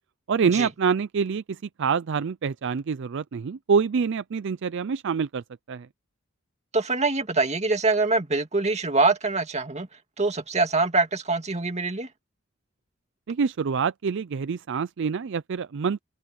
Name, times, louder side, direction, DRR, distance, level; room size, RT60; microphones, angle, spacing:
voice 1, 0.3-5.9 13.3-16.0, right 6 dB, 60° right, 0.4 m, -26 dB
voice 2, 6.7-9.9 10.2-12.1, right 3 dB, 35° right, 2.0 m, -24 dB
open air
head